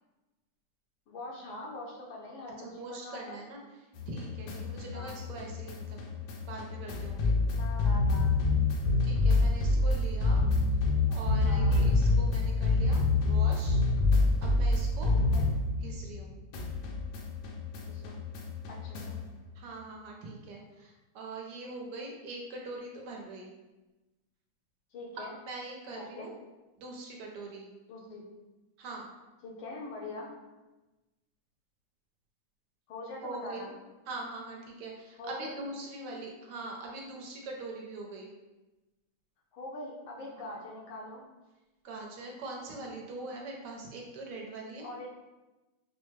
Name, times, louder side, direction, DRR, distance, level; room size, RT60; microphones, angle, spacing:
voice 1, 1.1-3.4 4.9-5.2 7.5-8.4 11.4-11.8 15.1-15.5 17.8-18.2 18.7-19.2 24.9-25.3 25.9-26.3 27.9-28.3 29.4-30.4 32.9-33.7 35.2-35.6 39.5-41.2 44.8-45.1, left 2 dB, 90° left, -3 dB, 1.6 m, -43 dB
voice 2, 2.6-3.6 4.1-6.0 6.5-7.3 9.0-10.4 11.1-13.8 14.4-15.1 15.8-16.4 19.5-23.5 25.2-26.4 26.8-27.7 28.8-29.1 33.2-33.7 34.1-38.3 40.4-40.6 41.8-44.9, right 2 dB, 70° right, 0 dB, 1.2 m, -42 dB
sound 1, 4.0-16.2 16.5-19.3, left 3 dB, 75° left, 1.1 m, -27 dB
4.6 x 2.1 x 3.1 m, 1.1 s
omnidirectional pair, 2.0 m